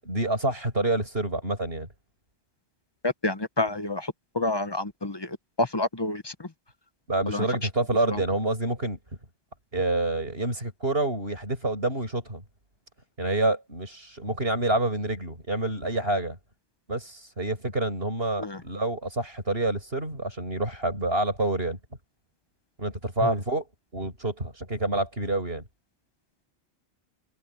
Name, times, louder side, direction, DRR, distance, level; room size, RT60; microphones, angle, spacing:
voice 1, 0.0-1.9 7.1-9.0 9.7-12.4 13.2-16.4 16.9-21.8 22.8-23.7 23.9-25.6, right 2 dB, 60° right, 8.3 m, -27 dB
voice 2, 3.0-4.1 4.3-5.3 5.6-6.3 7.3-7.4 18.4-18.6 23.2-23.3, left 2 dB, 25° left, 1.0 m, -28 dB
omnidirectional pair, 1.2 m